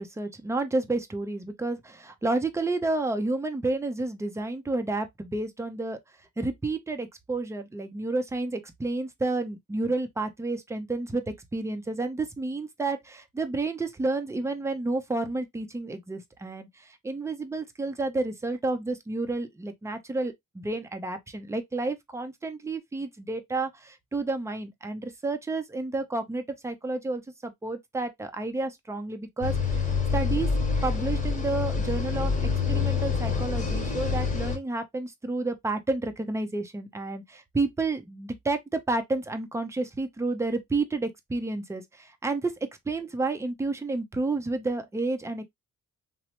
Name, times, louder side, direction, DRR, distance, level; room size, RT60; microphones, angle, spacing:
voice 1, 0.0-6.0 6.4-11.2 11.5-29.8 30.1-30.5 30.8-32.3 32.7-42.5 42.9-45.4, right 2 dB, 10° right, 0.5 m, -30 dB
sound 1, 29.4-34.6, left 5 dB, 25° left, 1.2 m, -27 dB
2.9 x 2.0 x 2.8 m
cardioid pair, 90°, 30 cm